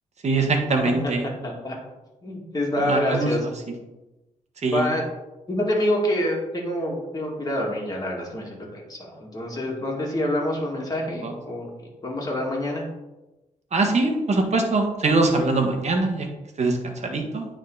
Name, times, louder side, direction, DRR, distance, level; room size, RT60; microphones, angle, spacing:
voice 1, 0.2-1.2 2.8-3.3 4.6-4.8 11.2-11.3 13.7-16.3 16.6-17.5, right 3 dB, 50° right, 3 dB, 1.4 m, -22 dB
voice 2, 1.4-1.8 2.2-3.5 4.7-5.1 5.5-12.8, left 1 dB, 25° left, -2 dB, 2.2 m, -27 dB
9.4 x 3.8 x 4.0 m, 1.0 s
cardioid pair, 90°, 15 cm